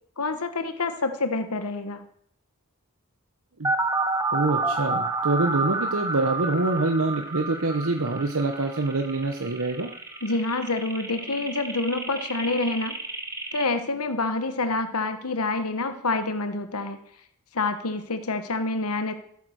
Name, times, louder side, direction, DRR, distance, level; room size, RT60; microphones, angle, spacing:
voice 1, 0.2-2.0 10.2-13.0 13.5-17.0 17.5-19.1, left 3 dB, 80° left, 9 dB, 1.3 m, -27 dB
sound 1, 3.6-13.6, right 3 dB, 15° right, 1.7 m, -30 dB
voice 2, 4.3-9.9, right 2 dB, 70° right, 4 dB, 1.1 m, -25 dB
15.0 x 9.5 x 6.5 m, 0.67 s
head